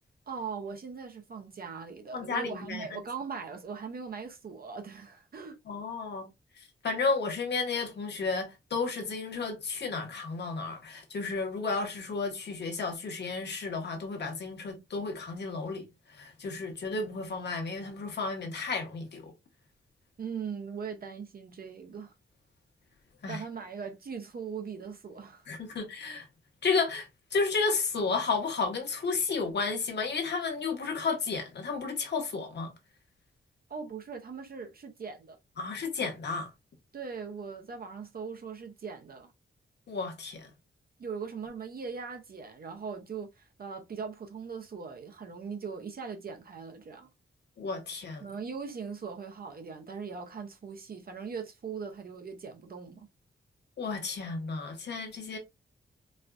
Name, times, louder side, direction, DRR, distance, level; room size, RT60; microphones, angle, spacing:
voice 1, 0.3-5.6 20.2-22.1 23.2-25.5 33.7-35.4 36.9-39.3 41.0-47.1 48.2-53.1, right 5 dB, 45° right, 0.6 m, -40 dB
voice 2, 2.1-3.0 5.7-6.3 6.8-15.9 16.2-19.3 23.2-23.4 25.5-26.3 26.6-32.7 35.6-36.5 39.9-40.5 47.6-48.3 53.8-55.4, left 4 dB, 60° left, 1.0 m, -32 dB
4.2 x 2.3 x 2.4 m
wide cardioid pair, 145°, 21 cm